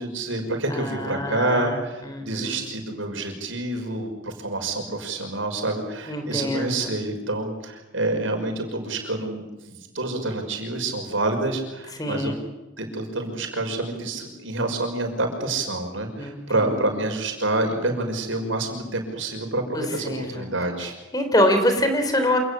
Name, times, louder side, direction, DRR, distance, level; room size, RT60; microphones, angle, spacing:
voice 1, 0.0-12.3 12.8-20.9, right 2 dB, 75° right, 4 dB, 5.8 m, -28 dB
voice 2, 0.7-1.8 2.0-2.7 6.1-6.9 12.0-12.4 16.2-16.9 19.7-20.5 21.1-22.4, left 1 dB, 20° left, 7 dB, 3.6 m, -25 dB
27.5 x 19.0 x 8.5 m, 1.1 s
head